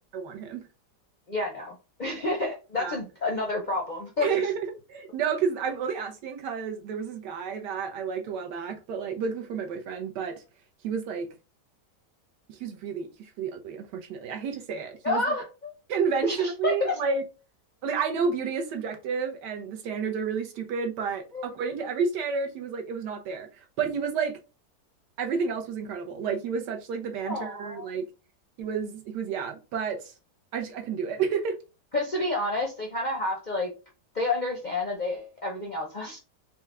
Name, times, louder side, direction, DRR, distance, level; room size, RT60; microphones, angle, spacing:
voice 1, 0.1-0.6 2.8-3.0 4.2-10.3 10.8-11.3 12.5-13.1 13.4-15.2 15.9-17.2 17.8-23.5 23.8-24.4 25.2-28.0 28.6-30.1 30.5-31.6, right 6 dB, 85° right, 1.4 m, -30 dB
voice 2, 1.3-4.4 15.0-15.7 16.2-17.0 21.3-21.5 27.2-27.9 31.9-33.7 34.1-36.2, left 2 dB, 55° left, 0.5 m, -29 dB
4.4 x 2.2 x 3.5 m
omnidirectional pair, 1.8 m